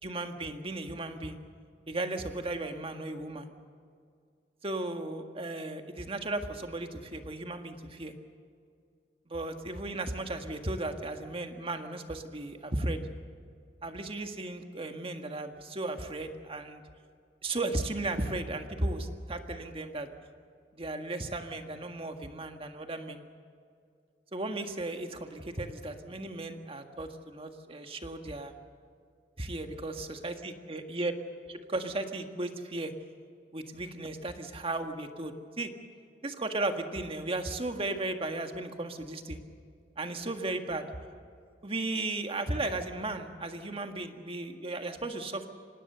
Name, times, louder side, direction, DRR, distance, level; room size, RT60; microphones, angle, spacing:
voice 1, 0.0-1.4 1.9-3.5 4.6-8.1 9.3-13.0 13.8-16.8 17.4-20.1 20.7-23.2 24.3-28.5 29.4-31.1 31.5-32.9 33.5-35.7 36.2-39.4 40.0-40.9 41.6-45.5, right 2 dB, 30° right, 6 dB, 1.7 m, -35 dB
25.5 x 19.0 x 6.9 m, 2.3 s
head